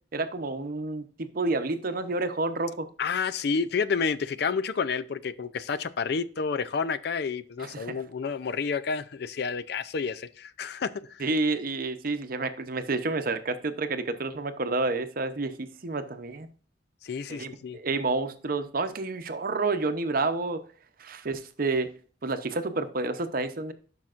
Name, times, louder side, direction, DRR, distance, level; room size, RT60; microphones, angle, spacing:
voice 1, 0.1-2.9 7.6-8.0 11.2-16.5 17.3-20.6 21.0-21.9 22.2-23.7, right 3 dB, 50° right, 0.7 m, -29 dB
voice 2, 3.0-11.2 17.0-17.8, left 5 dB, 60° left, 0.4 m, -30 dB
12.0 x 5.7 x 2.5 m
head